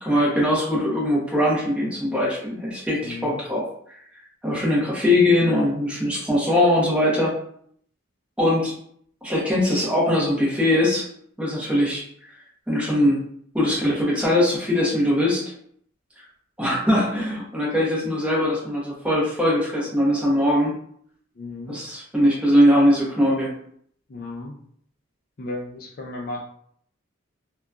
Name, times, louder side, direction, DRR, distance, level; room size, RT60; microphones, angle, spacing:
voice 1, 0.0-3.6 4.4-7.3 8.4-8.7 9.2-11.1 11.4-12.0 12.7-13.2 13.5-15.4 16.6-20.7 21.7-23.5, left 1 dB, 5° right, -6 dB, 0.7 m, -21 dB
voice 2, 3.0-3.4 21.4-21.8 24.1-24.6 25.4-26.4, left 2 dB, 45° left, -1 dB, 0.4 m, -34 dB
2.7 x 2.2 x 2.3 m, 0.64 s
head